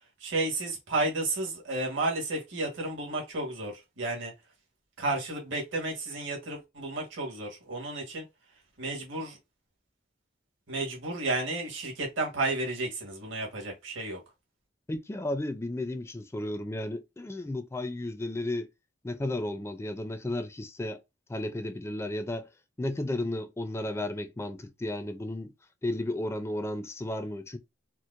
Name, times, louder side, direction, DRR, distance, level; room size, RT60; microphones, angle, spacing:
voice 1, 0.2-4.3 5.0-8.3 8.8-9.4 10.7-14.2, right 2 dB, 75° right, 1.4 m, -32 dB
voice 2, 14.9-18.7 19.0-21.0 21.3-22.5 22.8-25.5 25.8-27.6, left 1 dB, 15° left, 0.4 m, -33 dB
4.4 x 2.0 x 2.5 m
head